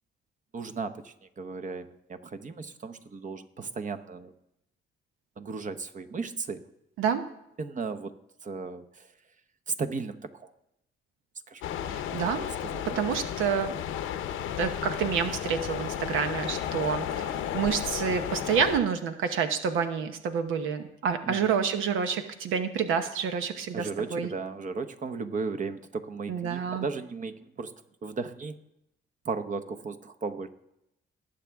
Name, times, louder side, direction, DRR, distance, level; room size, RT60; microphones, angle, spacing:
voice 1, 0.5-4.3 5.4-6.6 7.6-8.1 8.4-9.1 9.7-10.5 11.5-11.6 12.6-13.0 21.3-21.4 23.7-27.7 28.0-28.6 29.2-30.5, right 4 dB, 40° right, 9 dB, 0.9 m, -35 dB
voice 2, 7.0-7.3 11.9-12.5 12.9-13.7 14.6-24.3 26.3-26.9, right 7 dB, 85° right, 8 dB, 1.0 m, -28 dB
sound 1, 11.6-18.8, left 10 dB, 90° left, 0.8 m, -33 dB
19.5 x 7.5 x 3.5 m, 0.81 s
cardioid pair, 90°, 20 cm